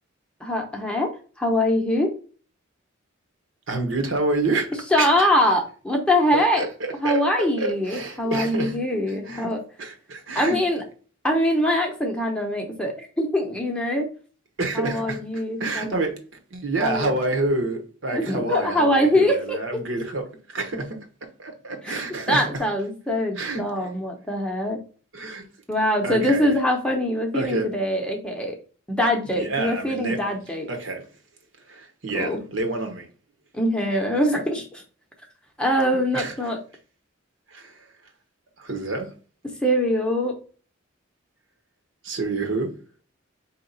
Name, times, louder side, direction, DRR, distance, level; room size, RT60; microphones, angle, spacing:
voice 1, 0.4-1.1 1.4-2.1 4.9-6.7 7.0-9.6 10.3-10.8 11.2-14.1 14.7-16.0 16.8-17.1 18.1-19.8 21.8-22.0 22.3-24.8 25.7-28.6 28.9-30.7 32.1-32.4 33.5-34.8 35.6-36.6 39.6-40.4, left 1 dB, 5° left, 0.7 m, -23 dB
voice 2, 3.7-5.3 6.5-8.8 9.3-9.5 9.8-10.6 14.6-16.2 16.5-21.0 21.4-22.4 23.4-23.7 25.1-25.4 26.0-26.5 27.3-27.7 29.3-30.2 30.7-31.1 31.7-33.1 36.1-36.3 37.5-37.9 38.6-39.1 42.0-42.7, right 2 dB, 65° right, 1.0 m, -28 dB
4.5 x 2.9 x 3.9 m
head